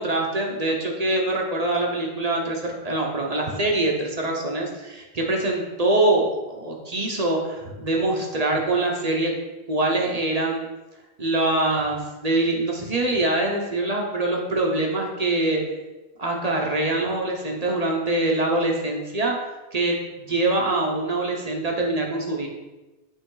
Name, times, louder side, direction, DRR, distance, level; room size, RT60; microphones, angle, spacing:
voice 1, 0.0-9.3 9.7-10.6 11.2-15.6 16.2-22.5, right 2 dB, 40° right, 0 dB, 0.9 m, -24 dB
8.2 x 3.5 x 3.8 m, 1.1 s
omnidirectional pair, 1.1 m